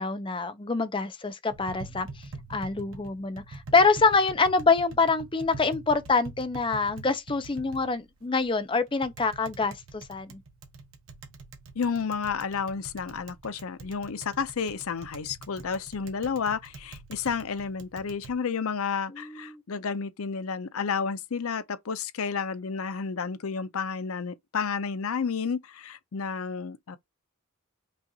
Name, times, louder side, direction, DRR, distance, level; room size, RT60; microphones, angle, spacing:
voice 1, 0.0-10.4 19.1-19.6, left 4 dB, 20° left, 0.5 m, -26 dB
Tap, 1.5-18.3, right 3 dB, 65° right, 1.0 m, -45 dB
voice 2, 11.8-27.0, left 6 dB, 70° left, 0.5 m, -31 dB
5.5 x 2.4 x 2.7 m
head